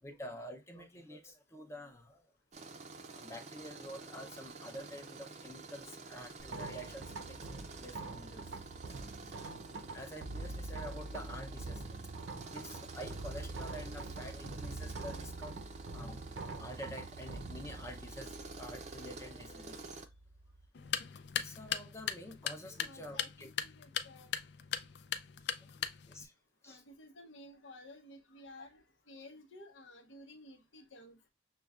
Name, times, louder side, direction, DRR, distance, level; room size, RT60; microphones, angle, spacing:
voice 1, 0.0-2.3 3.1-8.6 9.9-15.5 15.9-16.2 16.6-19.8 21.3-23.5 25.6-26.3 26.6-26.8, equal, 15° left, 0.6 m, -48 dB
Tools, 2.5-20.1, right 3 dB, 35° right, 0.5 m, -50 dB
sound 1, 6.4-20.7, right 3 dB, 90° right, 0.6 m, -45 dB
sound 2, 20.7-26.3, left 8 dB, 60° left, 0.4 m, -39 dB
voice 2, 22.8-24.3 26.6-31.3, left 1 dB, 80° left, 0.8 m, -54 dB
6.6 x 2.2 x 2.3 m
head